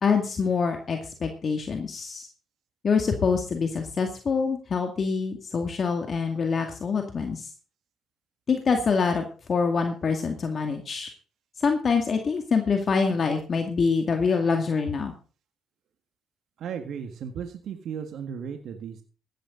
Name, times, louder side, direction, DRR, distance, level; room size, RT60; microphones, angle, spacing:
voice 1, 0.0-2.3 2.8-7.5 8.5-11.1 11.6-15.1, left 5 dB, 45° left, 4 dB, 2.2 m, -25 dB
voice 2, 16.6-19.0, right 7 dB, 70° right, 6 dB, 1.6 m, -35 dB
15.5 x 11.5 x 3.9 m, 0.38 s
cardioid pair, 90°, 0 cm